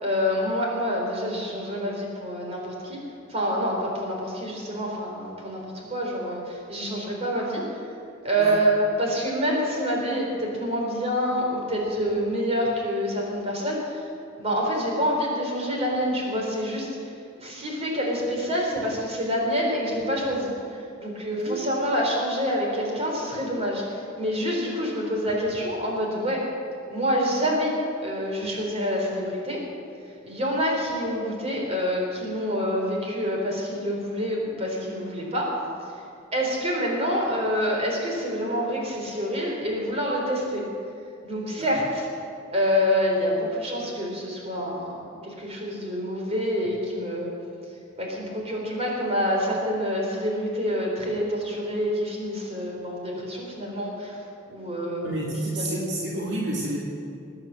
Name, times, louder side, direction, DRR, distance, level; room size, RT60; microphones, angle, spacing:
voice 1, 0.0-3.0 3.3-7.6 8.2-14.0 14.4-17.1 17.4-20.5 21.0-26.4 26.9-27.7 28.0-29.6 30.3-35.5 36.3-40.6 41.2-42.1 42.5-45.0 45.2-47.3 48.0-54.2 54.5-55.3 55.6-55.9, equal, 35° right, -1 dB, 4.0 m, -27 dB
voice 2, 55.0-56.8, right 1 dB, 65° right, -3 dB, 2.5 m, -30 dB
19.5 x 9.8 x 7.6 m, 2.5 s
head